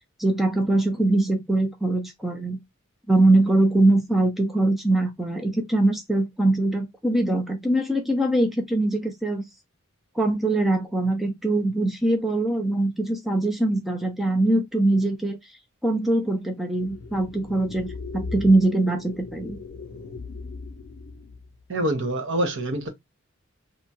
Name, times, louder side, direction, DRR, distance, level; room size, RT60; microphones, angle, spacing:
voice 1, 0.2-2.6 3.1-9.4 10.2-15.4 15.8-19.6, right 2 dB, ahead, 0.4 m, -22 dB
sound 1, 16.8-21.6, left 3 dB, 60° left, 0.4 m, -38 dB
voice 2, 21.7-22.9, right 1 dB, 60° right, 0.7 m, -25 dB
2.8 x 2.2 x 2.7 m
head